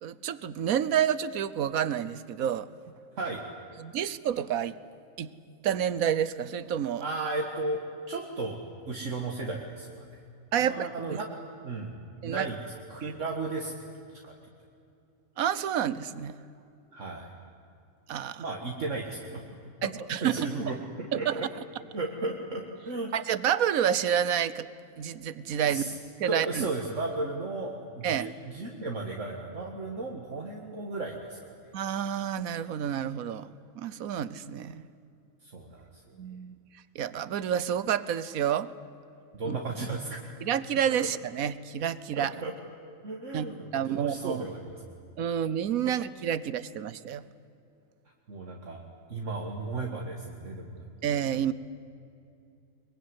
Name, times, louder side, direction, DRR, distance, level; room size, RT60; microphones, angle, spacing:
voice 1, 0.0-2.7 3.8-4.8 5.2-5.3 5.6-7.0 10.5-11.2 12.2-12.5 13.0-13.2 15.4-16.3 18.1-18.4 19.8-20.5 21.1-21.4 23.1-24.7 25.0-26.7 28.0-28.3 31.7-33.5 33.8-34.8 36.2-36.6 36.9-38.7 39.4-39.6 40.4-42.4 43.3-44.4 45.2-47.2 51.0-51.5, right 9 dB, 90° right, 17 dB, 1.3 m, -29 dB
voice 2, 7.0-10.2 10.6-11.3 11.6-13.7 14.2-14.3 16.9-17.4 18.4-19.4 20.2-21.5 21.9-23.1 25.7-25.9 26.3-31.6 35.4-35.9 39.3-40.2 41.0-41.1 42.2-42.5 43.0-43.7 43.9-44.8 45.9-46.0 48.3-48.8 49.1-50.9, right 2 dB, 60° right, 0 dB, 2.2 m, -35 dB
22.5 x 22.5 x 9.8 m, 2.6 s
omnidirectional pair, 1.4 m